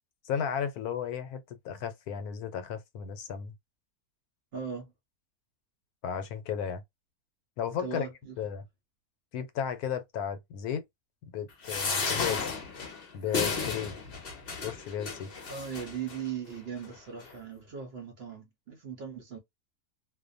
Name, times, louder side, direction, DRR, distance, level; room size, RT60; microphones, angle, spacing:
voice 1, 0.2-3.5 6.0-6.8 7.6-8.1 8.4-8.6 9.3-10.8 11.3-12.5 13.1-14.0 14.6-15.3, left 8 dB, 80° left, 1.1 m, -34 dB
voice 2, 4.5-4.9 7.8-8.3 15.5-19.4, right 7 dB, 55° right, 0.7 m, -38 dB
sound 1, 11.6-16.2 16.8-16.9 17.2-17.3, left 4 dB, 50° left, 0.8 m, -33 dB
2.6 x 2.1 x 2.5 m
omnidirectional pair, 1.6 m